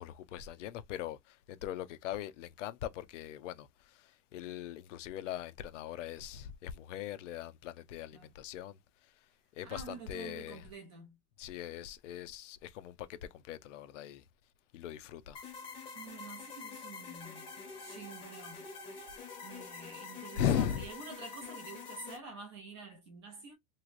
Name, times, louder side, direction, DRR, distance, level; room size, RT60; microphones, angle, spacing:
voice 1, 0.0-8.8 9.6-10.6 11.4-14.2 14.7-15.4 20.3-20.8, left 10 dB, 55° left, 0.6 m, -39 dB
voice 2, 9.6-11.2 15.9-17.5 17.8-18.7 19.4-23.5, right 4 dB, 20° right, 0.4 m, -48 dB
sound 1, 15.3-22.2, left 5 dB, 10° left, 0.7 m, -46 dB
3.1 x 2.9 x 2.4 m
supercardioid pair, 175°, 44 cm